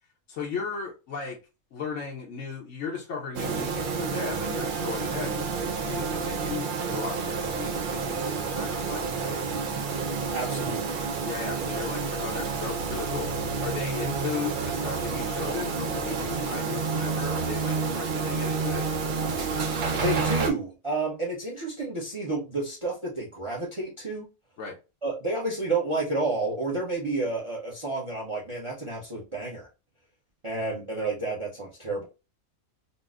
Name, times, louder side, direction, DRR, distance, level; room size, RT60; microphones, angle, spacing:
voice 1, 0.3-1.4 1.7-5.5 5.8-9.4 11.2-18.9 24.6-24.8, left 5 dB, 65° left, 0.9 m, -36 dB
sound 1, 3.4-20.5, right 5 dB, 70° right, 0.4 m, -29 dB
voice 2, 10.3-11.0 19.9-24.3 25.0-29.7 30.4-32.1, right 2 dB, 30° right, 0.7 m, -30 dB
4.0 x 2.1 x 2.4 m
omnidirectional pair, 1.5 m